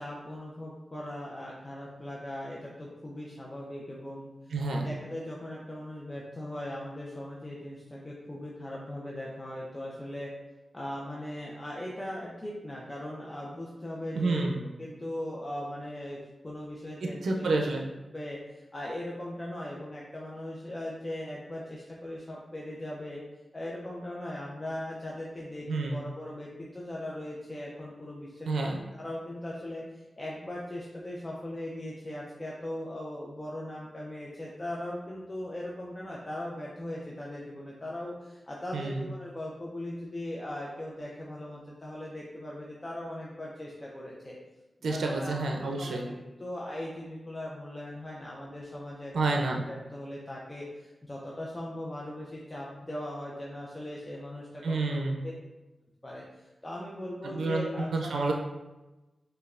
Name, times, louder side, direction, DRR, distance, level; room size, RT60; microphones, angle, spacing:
voice 1, 0.0-4.3 4.8-7.8 8.0-10.3 10.7-14.4 14.8-16.2 16.4-17.5 18.1-18.4 18.7-23.2 23.5-26.5 26.7-29.8 30.2-38.1 38.5-44.3 44.8-46.0 46.4-50.6 51.1-55.1 56.0-56.2 56.6-58.1, left 1 dB, 30° left, -4 dB, 0.6 m, -39 dB
voice 2, 4.5-4.9 14.1-14.6 17.2-17.8 25.7-26.0 28.5-28.8 38.7-39.1 44.8-46.0 49.1-49.6 54.6-55.2 57.2-58.3, right 3 dB, 90° right, 1 dB, 0.4 m, -29 dB
5.1 x 2.2 x 2.4 m, 1.1 s
cardioid pair, 55°, 0 cm